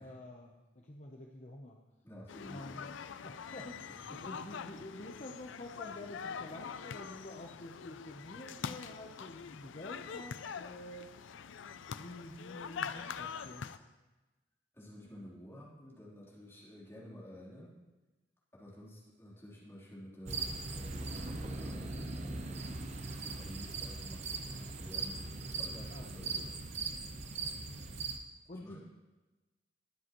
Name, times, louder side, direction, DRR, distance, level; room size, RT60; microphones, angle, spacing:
voice 1, 0.0-1.8 2.5-3.9 4.2-11.1 11.9-13.9 22.0-22.4 25.9-26.5 27.7-28.1 28.5-28.8, left 1 dB, 40° left, 1 dB, 0.8 m, -49 dB
voice 2, 2.0-2.8 3.9-4.3 14.7-17.8 18.5-26.5 28.6-28.8, equal, 15° left, -8 dB, 3.4 m, -52 dB
sound 1, 2.3-13.8, left 6 dB, 85° left, 0.4 m, -44 dB
sound 2, 20.3-28.2, right 3 dB, 35° right, 0.8 m, -40 dB
21.0 x 7.7 x 3.1 m, 1.1 s
head